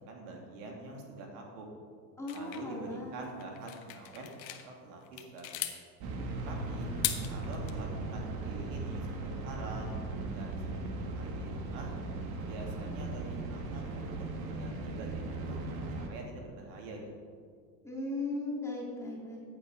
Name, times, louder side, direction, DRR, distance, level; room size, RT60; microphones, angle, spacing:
voice 1, 0.1-1.7 2.3-5.7 6.4-6.9 7.3-9.9 10.3-10.6 10.9-11.9 12.4-15.6 16.1-17.1, right 2 dB, 60° right, 0 dB, 2.8 m, -46 dB
voice 2, 2.2-3.3 6.2-6.5 6.8-7.0 17.8-19.4, left 2 dB, 5° left, -4 dB, 3.0 m, -38 dB
sound 1, 2.3-4.6 5.0-5.8 6.8-7.7, left 12 dB, 85° left, 1.3 m, -38 dB
sound 2, 6.0-16.1, right 2 dB, 45° right, 2.0 m, -38 dB
14.5 x 8.8 x 5.0 m, 2.1 s
supercardioid pair, 110°, 50 cm